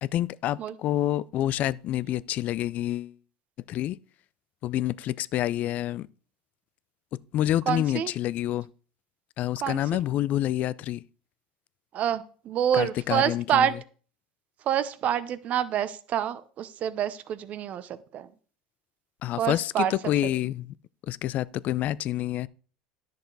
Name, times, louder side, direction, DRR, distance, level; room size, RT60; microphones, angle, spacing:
voice 1, 0.0-3.1 3.7-4.0 4.6-6.1 7.3-8.7 9.4-11.0 12.7-13.7 19.2-20.7 21.1-22.5, left 13 dB, 50° left, 0.4 m, -28 dB
voice 2, 7.7-8.1 9.6-10.0 11.9-13.7 14.7-18.3 19.4-19.9, right 9 dB, 50° right, 0.8 m, -27 dB
10.5 x 6.7 x 4.0 m
hypercardioid pair, 90°, 3 cm